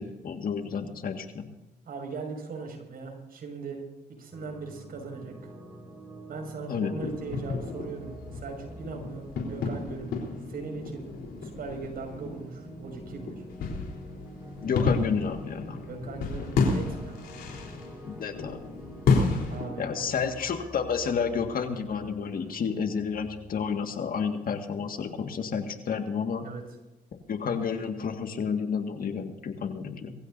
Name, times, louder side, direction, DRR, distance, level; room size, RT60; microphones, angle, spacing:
voice 1, 0.0-1.5 6.7-7.0 14.6-15.8 18.1-18.6 19.8-26.5 27.3-30.1, left 6 dB, 65° left, 6 dB, 1.9 m, -30 dB
voice 2, 1.9-3.8 4.2-5.5 6.3-11.1 11.4-13.4 14.9-15.0 15.9-17.3 19.5-20.3 26.4-26.6, right 4 dB, 70° right, 3 dB, 6.0 m, -39 dB
sound 1, 4.3-23.7, right 1 dB, 15° right, 4.7 m, -47 dB
sound 2, 7.0-19.7, left 4 dB, 90° left, 3.8 m, -31 dB
23.0 x 15.5 x 2.7 m, 1.0 s
cardioid pair, 70°, 16 cm